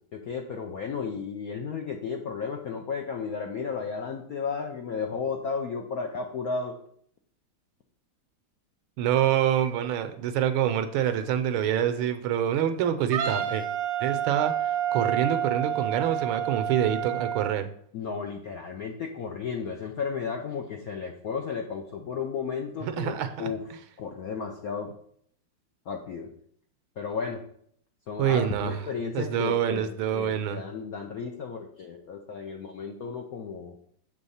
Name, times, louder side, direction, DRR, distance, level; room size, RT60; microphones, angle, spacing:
voice 1, 0.1-6.8 17.9-23.6 24.0-24.9 25.9-26.3 27.0-27.4 28.1-33.7, left 5 dB, 75° left, 2 dB, 0.8 m, -33 dB
voice 2, 9.0-13.7 14.0-17.7 22.8-23.5 28.2-28.8 29.1-30.6, right 10 dB, 80° right, 9 dB, 1.4 m, -26 dB
Wind instrument woodwind instrument, 13.1-17.6, right 10 dB, 55° right, 1.0 m, -29 dB
6.9 x 3.6 x 5.5 m, 0.65 s
omnidirectional pair, 2.3 m